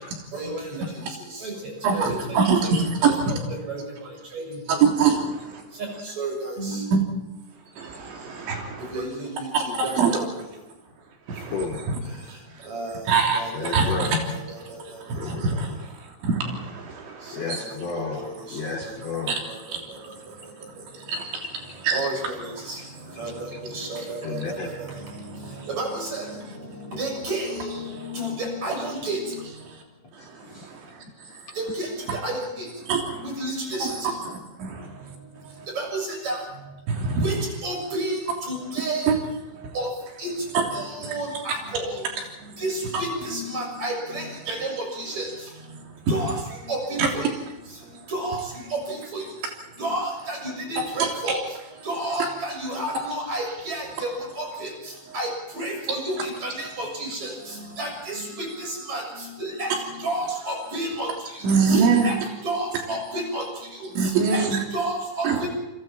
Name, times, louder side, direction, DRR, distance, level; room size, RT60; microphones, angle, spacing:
voice 1, 0.3-0.8 1.4-1.5 1.9-2.2 2.6-2.8 3.0-3.1 3.7-3.8 4.3-4.8 6.2-6.9 8.9-10.1 12.7-13.0 13.3-13.9 14.3-14.4 17.9-18.2 21.9-22.8 23.2-24.6 25.8-26.3 26.9-29.2 31.6-32.4 33.2-33.9 35.8-36.4 37.2-37.4 37.6-38.2 38.5-39.1 39.7-39.9 40.2-40.3 40.7-42.0 42.6-45.3 46.1-46.4 46.7-47.2 48.1-48.4 48.7-49.2 49.8-51.4 51.8-54.1 54.4-54.7 55.1-55.3 55.5-57.3 57.8-59.0 59.4-59.7 60.0-61.1 61.7-62.2 62.4-63.4 64.3-64.4 64.7-65.5, right 1 dB, 35° right, 2 dB, 7.9 m, -30 dB
voice 2, 1.8-3.1 4.8-5.2 7.8-7.9 8.5-8.6 9.5-10.2 11.4-11.5 11.9-12.0 13.1-13.4 13.7-14.1 15.1-15.7 16.2-16.4 17.5-17.6 19.3-19.4 21.1-21.2 21.8-22.1 32.9-33.0 33.8-33.9 34.6-34.7 37.0-37.2 39.1-39.2 40.5-40.7 42.9-43.0 47.0-47.1 61.4-62.2 64.0-64.6 65.2-65.5, right 5 dB, 75° right, 2 dB, 5.6 m, -21 dB
voice 3, 8.2-8.8 11.4-11.9 13.5-14.2 15.1-15.6 17.3-19.5 21.4-21.5 22.8-22.9 23.1-23.6 24.2-24.7 30.2-30.7 31.2-31.6, left 4 dB, 40° left, 1 dB, 3.2 m, -34 dB
29.5 x 23.0 x 4.5 m, 1.0 s
omnidirectional pair, 5.3 m